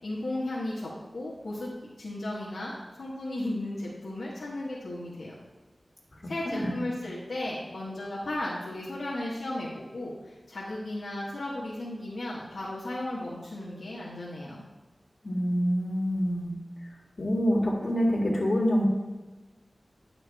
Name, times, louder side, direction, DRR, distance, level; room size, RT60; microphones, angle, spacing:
voice 1, 0.0-1.7 2.0-5.3 6.2-14.6, left 1 dB, 85° left, -6 dB, 1.5 m, -35 dB
voice 2, 6.5-6.8 15.2-16.5 17.2-18.8, equal, 60° left, -2 dB, 2.1 m, -26 dB
10.0 x 5.9 x 3.5 m, 1.2 s
cardioid pair, 45°, 0 cm